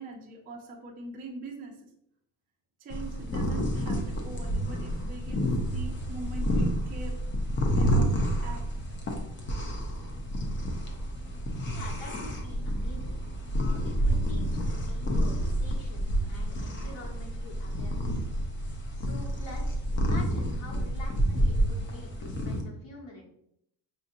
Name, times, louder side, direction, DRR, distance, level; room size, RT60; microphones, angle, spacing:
voice 1, 0.0-1.9 2.8-7.2 7.8-8.7, right 2 dB, 20° right, -1 dB, 0.4 m, -42 dB
sound 1, 2.9-22.6, equal, 25° left, 0.6 m, -29 dB
voice 2, 11.7-13.2 13.6-15.3 15.6-18.3 18.9-23.2, left 2 dB, 90° left, -1 dB, 1.3 m, -46 dB
5.0 x 2.8 x 2.5 m, 0.75 s
cardioid pair, 145°, 44 cm